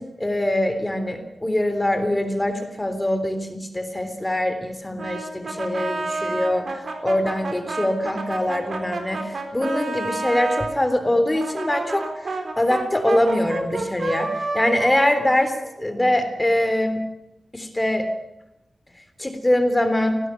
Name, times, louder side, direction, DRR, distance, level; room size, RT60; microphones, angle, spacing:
voice 1, 0.0-17.0 17.5-18.1 19.2-20.2, left 1 dB, 15° left, 8 dB, 3.4 m, -23 dB
Brass instrument, 5.0-10.7 11.3-16.1, right 3 dB, 65° right, 4.2 m, -30 dB
19.0 x 17.5 x 9.7 m, 0.89 s
wide cardioid pair, 85°, 0 cm